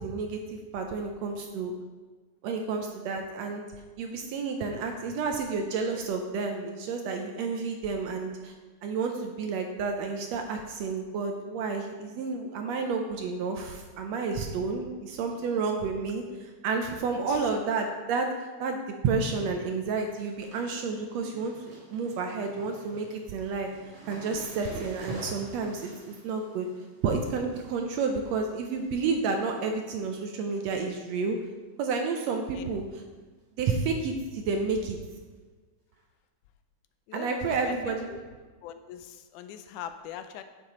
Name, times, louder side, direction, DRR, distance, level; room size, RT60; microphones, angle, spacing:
voice 1, 0.0-1.7 2.4-3.6 4.0-8.5 8.8-18.3 18.6-18.8 19.0-21.6 21.9-23.7 24.1-26.7 27.0-31.4 31.8-32.8 33.6-35.0 37.1-38.1, right 4 dB, 75° right, 4 dB, 1.7 m, -30 dB
sound 1, 19.5-19.6 19.9-29.1 29.4-29.9 30.2-31.0 31.3-31.4 32.4-32.7 32.9-33.0 33.4-33.5 35.1-35.2 35.9-36.0, right 1 dB, 45° right, 2.9 m, -48 dB
voice 2, 37.1-38.2 38.6-40.4, left 9 dB, 85° left, 9 dB, 2.1 m, -42 dB
9.4 x 7.4 x 3.8 m, 1.4 s
omnidirectional pair, 3.5 m